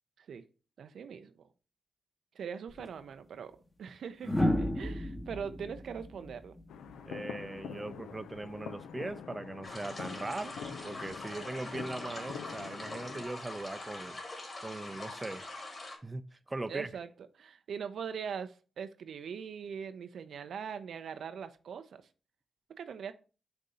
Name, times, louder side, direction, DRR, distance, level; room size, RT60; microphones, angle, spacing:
voice 1, 0.8-1.5 2.3-6.5 16.7-17.1 17.4-22.0 22.8-23.1, right 7 dB, 75° right, 0.5 m, -41 dB
sound 1, 2.7-2.9 4.2-7.3 8.8-9.1, left 1 dB, 15° left, 1.0 m, -33 dB
sound 2, 6.7-13.2, left 7 dB, 90° left, 0.4 m, -45 dB
voice 2, 7.0-14.2 14.6-15.5 16.0-16.9, right 2 dB, 25° right, 0.5 m, -40 dB
sound 3, 9.6-16.0, left 2 dB, 35° left, 2.9 m, -44 dB
6.4 x 2.7 x 5.4 m
cardioid pair, 60°, 0 cm